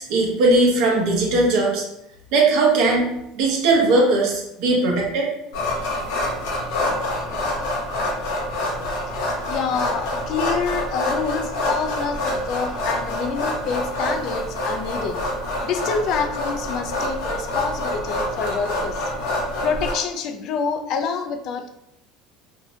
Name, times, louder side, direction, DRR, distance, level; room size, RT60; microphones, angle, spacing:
voice 1, 0.0-1.8 2.3-3.1 3.4-5.3, right 2 dB, 70° right, -1 dB, 0.8 m, -19 dB
sound 1, 5.5-19.9, left 1 dB, 85° left, 0.8 m, -26 dB
voice 2, 9.5-15.2 15.6-19.1 19.6-21.7, left 6 dB, 55° left, 6 dB, 0.3 m, -27 dB
2.6 x 2.0 x 2.7 m, 0.80 s
supercardioid pair, 110°, 0 cm